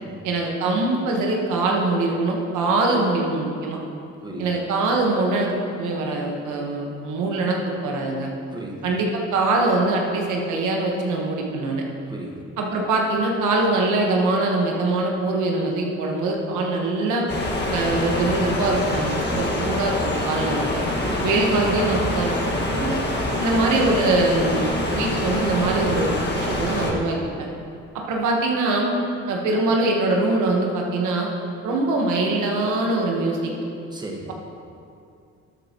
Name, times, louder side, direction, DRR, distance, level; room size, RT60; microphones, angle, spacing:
voice 1, 0.2-3.8 4.4-8.3 8.8-11.8 12.6-17.2 17.7-20.8 21.2-23.0 23.4-27.2 27.9-28.9 29.3-31.3 31.6-33.5, right 2 dB, 85° right, 0 dB, 1.4 m, -23 dB
voice 2, 4.2-4.6 8.5-8.9 12.1-12.4 21.0-21.2 23.2-23.5 33.9-34.3, right 1 dB, 15° right, -1 dB, 1.4 m, -35 dB
sound 1, 17.3-26.9, left 1 dB, 35° left, 1.8 m, -25 dB
12.5 x 7.7 x 3.0 m, 2.5 s
cardioid pair, 90°, 30 cm